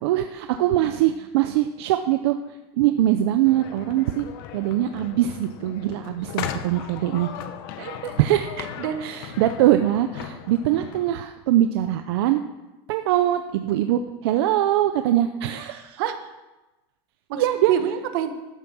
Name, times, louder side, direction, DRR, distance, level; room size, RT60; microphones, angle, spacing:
voice 1, 0.0-2.4 2.8-4.3 4.5-7.3 8.2-8.4 9.0-12.4 12.9-16.0 17.4-17.7, right 13 dB, 85° right, 7 dB, 0.7 m, -22 dB
sound 1, 3.5-11.1, left 9 dB, 65° left, 1.1 m, -37 dB
voice 2, 7.8-9.0 16.0-16.2 17.3-18.3, right 10 dB, 65° right, 8 dB, 1.4 m, -28 dB
13.0 x 9.2 x 6.2 m, 1.1 s
supercardioid pair, 165°, 13 cm